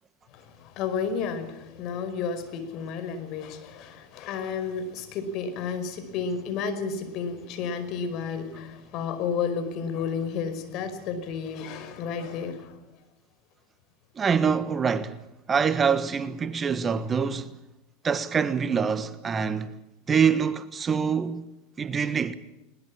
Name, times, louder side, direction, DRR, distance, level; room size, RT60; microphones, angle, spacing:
voice 1, 0.3-12.8, left 6 dB, 50° left, 5.1 m, -32 dB
voice 2, 14.2-15.2 15.5-17.5 18.0-19.8 20.1-21.4 21.8-22.3, right 6 dB, 25° right, 1.4 m, -25 dB
21.0 x 20.0 x 8.8 m
hypercardioid pair, 95°, 0 cm